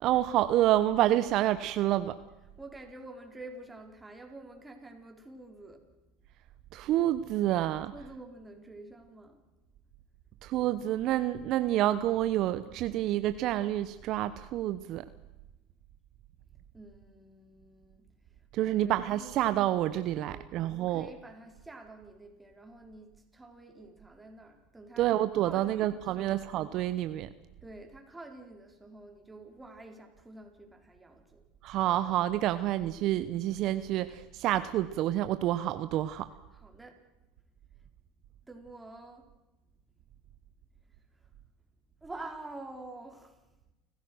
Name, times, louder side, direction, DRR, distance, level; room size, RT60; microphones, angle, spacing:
voice 1, 0.0-2.1 6.7-7.9 10.4-15.0 18.5-21.1 25.0-27.3 31.6-36.2, right 13 dB, 55° right, 12 dB, 0.9 m, -28 dB
voice 2, 2.4-5.8 7.9-9.4 16.7-18.0 18.6-19.4 20.1-26.4 27.6-31.4 36.5-37.0 38.4-39.3 42.0-43.4, right 2 dB, 10° right, 3 dB, 4.4 m, -48 dB
30.0 x 15.0 x 6.3 m, 1.0 s
hypercardioid pair, 90°, 0 cm